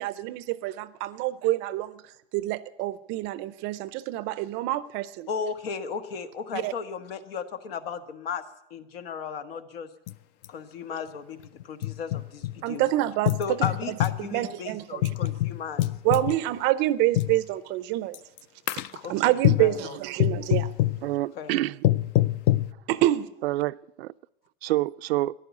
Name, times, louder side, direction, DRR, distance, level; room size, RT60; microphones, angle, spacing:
voice 1, 0.0-2.0 2.3-5.3 6.5-6.7 12.6-13.4 14.3-15.3 16.0-18.2 19.1-20.7 22.9-23.3, right 15 dB, 35° right, 0.5 m, -27 dB
voice 2, 5.3-8.4 8.7-9.9 10.5-12.8 13.4-16.4 19.0-20.0 21.3-21.5, left 6 dB, 75° left, 1.5 m, -35 dB
sound 1, 10.1-10.2 10.4-10.5 11.4-12.5 13.3-14.2 15.0-16.4 17.1-17.4 18.1-18.4 18.7-19.0 19.4-19.7 20.2-21.0 21.8-22.7, left 15 dB, 40° left, 0.4 m, -24 dB
voice 3, 21.0-21.8 23.4-24.1 24.6-25.3, right 16 dB, 85° right, 0.5 m, -27 dB
14.5 x 11.0 x 8.2 m
supercardioid pair, 140°, 30 cm